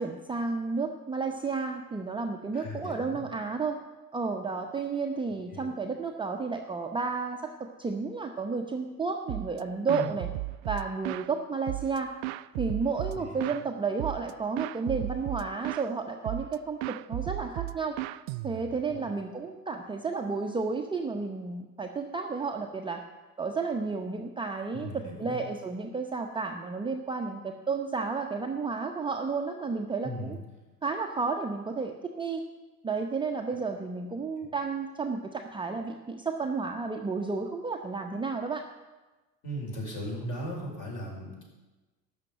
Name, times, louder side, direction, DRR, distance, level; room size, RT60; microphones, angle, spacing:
voice 1, 0.0-3.8 4.1-10.3 10.7-12.1 12.6-18.0 18.4-23.0 23.4-30.4 30.8-32.4 32.8-38.6, right 4 dB, 10° right, 3 dB, 0.7 m, -32 dB
voice 2, 2.5-3.2 5.5-5.7 9.8-10.1 13.1-13.3 18.9-19.1 24.7-25.4 30.0-30.3 39.4-41.4, equal, 40° left, -2 dB, 5.2 m, -37 dB
sound 1, 9.3-9.6 9.9-11.3 11.7-13.6 14.0-14.3 14.6-15.9 16.2-16.5 16.8-18.9, right 22 dB, 45° right, 0.4 m, -35 dB
12.5 x 5.9 x 8.8 m, 1.2 s
figure-of-eight pair, 75°, 46 cm